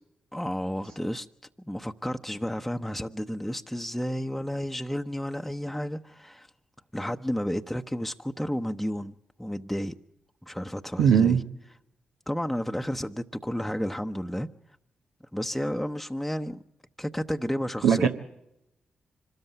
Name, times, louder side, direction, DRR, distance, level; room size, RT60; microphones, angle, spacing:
voice 1, 0.3-1.3 1.6-6.5 6.9-10.0 10.4-11.4 12.3-14.5 15.3-16.6 17.0-18.1, equal, 5° left, 0.8 m, -32 dB
voice 2, 11.0-11.4 17.8-18.1, right 8 dB, 85° right, 1.0 m, -19 dB
25.0 x 13.5 x 8.1 m
supercardioid pair, 45°, 3 cm